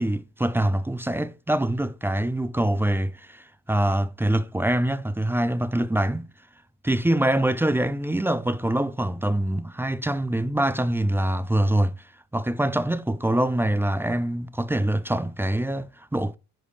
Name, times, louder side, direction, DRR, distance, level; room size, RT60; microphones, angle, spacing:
voice 1, 0.0-6.3 6.8-11.9 12.3-16.4, right 1 dB, 5° right, 0.4 m, -24 dB
10.0 x 4.9 x 3.2 m
supercardioid pair, 70°, 43 cm